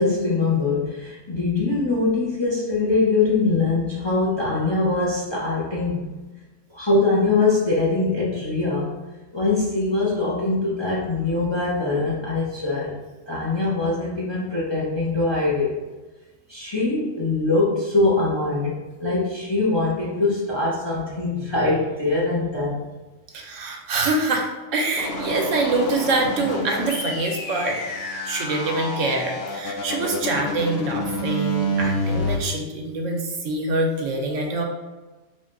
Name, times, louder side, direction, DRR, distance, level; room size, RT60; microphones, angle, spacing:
voice 1, 0.0-6.1 6.7-8.9 9.3-12.9 13.3-15.8 16.5-22.8, left 3 dB, 30° left, -6 dB, 0.5 m, -22 dB
voice 2, 23.3-27.8 28.2-34.6, right 2 dB, 80° right, 1 dB, 1.0 m, -25 dB
sound 1, 25.0-32.4, equal, 85° left, 0.9 m, -28 dB
3.5 x 2.2 x 3.7 m, 1.2 s
omnidirectional pair, 1.3 m